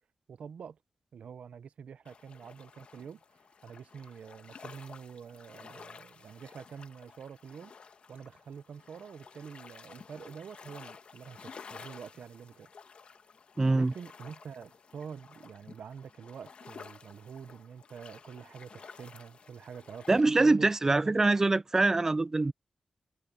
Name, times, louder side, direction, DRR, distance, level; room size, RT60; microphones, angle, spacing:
voice 1, 0.3-0.8 1.1-7.7 8.1-12.7 13.7-21.1, right 7 dB, 85° right, 0.8 m, -46 dB
sound 1, 2.0-20.2, left 5 dB, 60° left, 1.7 m, -52 dB
voice 2, 13.6-13.9 20.1-22.5, right 3 dB, 20° right, 0.3 m, -24 dB
wide cardioid pair, 130°, 2 cm